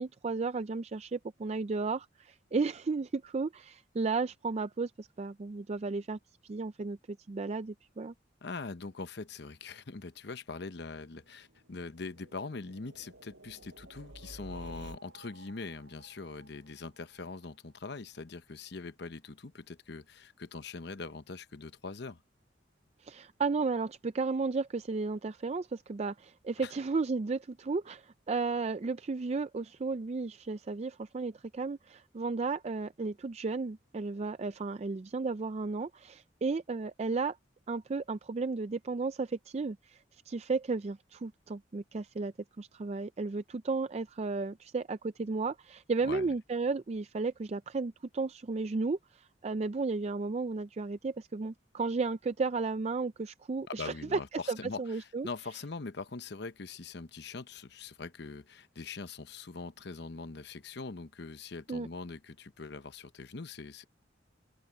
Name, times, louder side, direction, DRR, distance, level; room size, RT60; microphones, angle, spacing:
voice 1, 0.0-8.1 23.0-37.4 37.7-54.2 54.5-55.3 61.7-61.9, right 4 dB, 35° right, 0.4 m, -34 dB
voice 2, 8.4-22.2 26.6-26.7 46.0-46.3 53.7-63.8, left 4 dB, 60° left, 0.9 m, -42 dB
sound 1, 11.1-17.8, right 1 dB, 85° right, 5.2 m, -53 dB
head